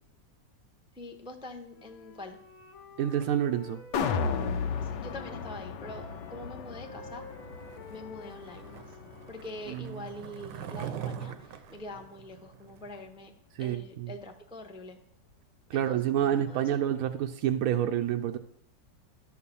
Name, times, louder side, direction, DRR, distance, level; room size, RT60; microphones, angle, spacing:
voice 1, 0.9-2.4 4.8-7.2 7.9-9.0 9.3-13.3 13.6-15.0 15.7-16.8, left 1 dB, 5° right, 4 dB, 0.3 m, -44 dB
Wind instrument woodwind instrument, 1.7-5.5 5.8-9.8, left 2 dB, 55° left, 1.4 m, -50 dB
voice 2, 3.0-3.8 9.7-10.1 13.5-14.1 15.7-18.4, right 10 dB, 70° right, 5 dB, 0.9 m, -28 dB
sound 1, 3.9-10.2 10.5-10.6, left 5 dB, 90° left, 1.4 m, -35 dB
Skateboard, 7.6-13.0, right 8 dB, 85° right, 1.4 m, -42 dB
11.5 x 4.6 x 6.9 m, 0.73 s
omnidirectional pair, 1.8 m